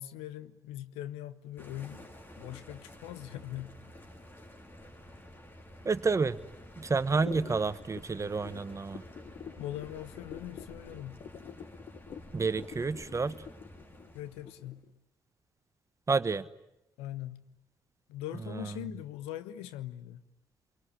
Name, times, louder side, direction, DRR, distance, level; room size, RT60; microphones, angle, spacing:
voice 1, 0.0-2.1 2.4-3.8 9.6-11.2 14.1-14.9 17.0-17.5 18.1-20.2, left 13 dB, 75° left, 14 dB, 1.0 m, -41 dB
sound 1, 1.6-14.7, left 1 dB, 20° left, 4.1 m, -51 dB
voice 2, 5.8-6.4 6.8-9.0 12.3-13.4 16.1-16.5 18.5-18.7, right 4 dB, 30° right, 15 dB, 1.2 m, -29 dB
sound 2, 7.1-14.9, left 8 dB, 55° left, 1.4 m, -46 dB
25.0 x 23.0 x 9.9 m, 0.87 s
hypercardioid pair, 45°, 10 cm